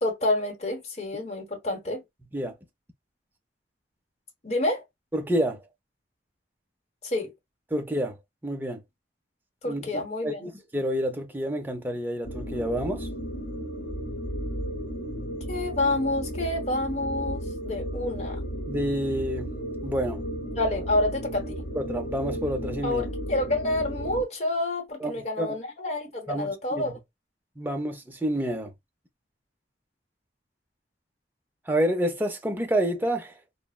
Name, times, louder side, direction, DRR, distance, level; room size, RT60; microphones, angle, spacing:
voice 1, 0.0-2.0 4.4-4.8 7.0-7.3 9.6-10.5 15.5-18.4 20.5-21.6 22.8-27.0, left 2 dB, 35° left, 0.9 m, -28 dB
voice 2, 5.1-5.6 7.7-8.2 8.4-8.8 9.6-13.1 18.7-19.5 19.8-20.2 21.7-23.0 25.0-25.1 25.4-25.6 26.3-26.9 27.6-28.7 31.7-33.4, equal, 10° right, 0.4 m, -28 dB
sound 1, 12.2-24.2, equal, 75° left, 0.8 m, -34 dB
3.3 x 2.0 x 2.2 m
head